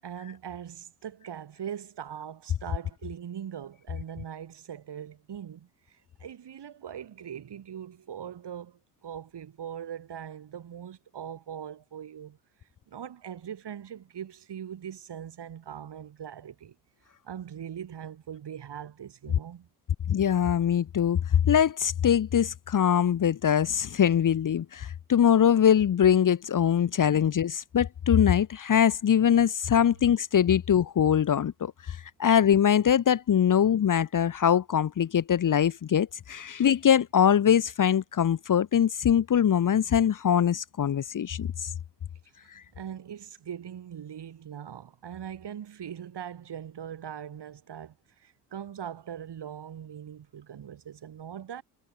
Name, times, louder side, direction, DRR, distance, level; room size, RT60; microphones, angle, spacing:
voice 1, 0.0-12.4 12.9-16.8 17.2-19.7 42.4-51.6, right 9 dB, 55° right, 7.7 m, -41 dB
voice 2, 20.1-41.5, left 9 dB, 40° left, 1.1 m, -23 dB
supercardioid pair, 60°, 48 cm